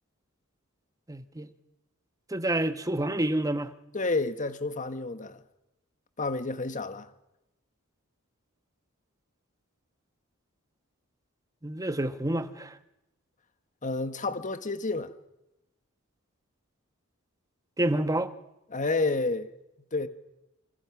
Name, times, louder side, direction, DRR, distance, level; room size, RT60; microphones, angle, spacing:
voice 1, 1.1-1.5 2.3-3.7 11.6-12.8 17.8-18.3, right 1 dB, 15° right, 1.3 m, -28 dB
voice 2, 3.9-5.4 6.2-7.1 13.8-15.1 18.7-19.5 19.9-20.1, left 3 dB, 35° left, 1.6 m, -30 dB
28.0 x 25.5 x 6.0 m
head